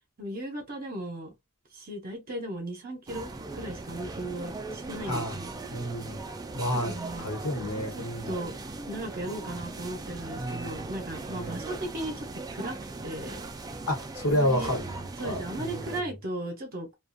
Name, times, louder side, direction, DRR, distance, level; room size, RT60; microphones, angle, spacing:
voice 1, 0.2-1.3 1.7-3.3 3.5-5.6 6.7-7.3 7.6-8.5 8.9-12.8 13.0-13.4 14.3-14.7 15.2-16.9, right 1 dB, 40° right, 0.7 m, -37 dB
sound 1, 3.1-16.0, right 3 dB, 15° right, 0.3 m, -39 dB
voice 2, 5.7-6.2 6.5-8.3 10.4-10.9 11.3-11.6 13.9-15.0 15.2-15.9, equal, 75° left, 1.1 m, -30 dB
2.4 x 2.2 x 2.5 m
head